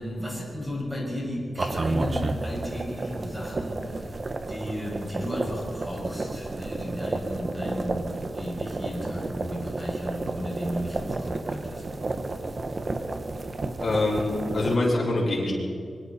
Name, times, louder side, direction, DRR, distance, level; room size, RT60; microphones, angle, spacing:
voice 1, 0.0-11.9, equal, 10° right, -3 dB, 6.5 m, -34 dB
sound 1, 1.6-14.8, right 2 dB, 35° right, 1.2 m, -31 dB
voice 2, 13.8-15.5, left 2 dB, 40° left, -3 dB, 6.5 m, -24 dB
25.5 x 24.0 x 4.3 m, 2.4 s
wide cardioid pair, 165°, 0 cm